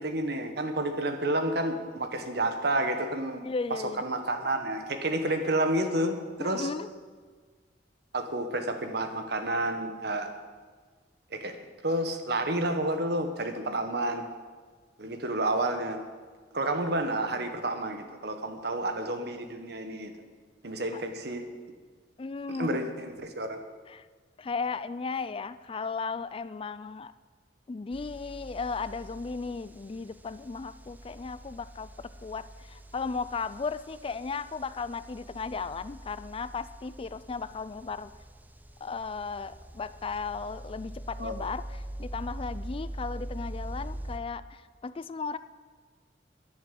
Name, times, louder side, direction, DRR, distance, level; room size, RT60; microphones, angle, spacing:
voice 1, 0.0-3.4 3.7-6.7 8.1-10.3 11.3-11.6 11.8-14.3 15.0-16.0 16.5-20.1 20.6-21.4 22.5-23.6 41.2-41.4, right 1 dB, 65° right, 7 dB, 1.5 m, -30 dB
voice 2, 3.4-4.1 6.4-6.9 20.9-21.0 22.2-22.8 23.9-24.1 24.4-27.1 27.7-38.1 38.8-45.4, left 4 dB, 30° left, 14 dB, 0.4 m, -35 dB
sound 1, 27.9-44.2, right 1 dB, 10° right, 0.7 m, -43 dB
10.5 x 10.5 x 8.4 m, 1.5 s
head